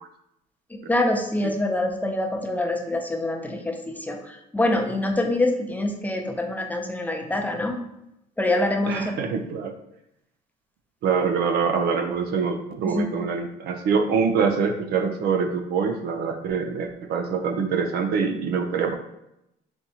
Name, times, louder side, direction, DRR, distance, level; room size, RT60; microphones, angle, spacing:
voice 1, 0.7-7.8 8.4-9.1 12.8-13.1, left 1 dB, 10° left, 3 dB, 0.6 m, -25 dB
voice 2, 8.9-9.7 11.0-18.9, right 5 dB, 70° right, 6 dB, 0.6 m, -24 dB
4.5 x 3.7 x 2.8 m, 0.83 s
cardioid pair, 110°, 17 cm